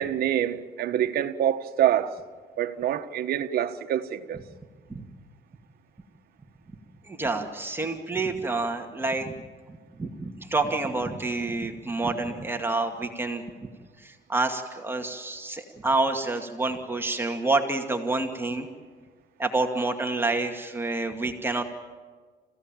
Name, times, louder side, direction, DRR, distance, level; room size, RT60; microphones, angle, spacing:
voice 1, 0.0-2.1 2.6-4.4, right 11 dB, 65° right, 1.5 m, -26 dB
voice 2, 7.0-9.3 9.7-13.7 14.0-18.7 19.4-21.6, right 3 dB, 15° right, 2.3 m, -28 dB
28.5 x 16.5 x 9.1 m
cardioid pair, 110°, 17 cm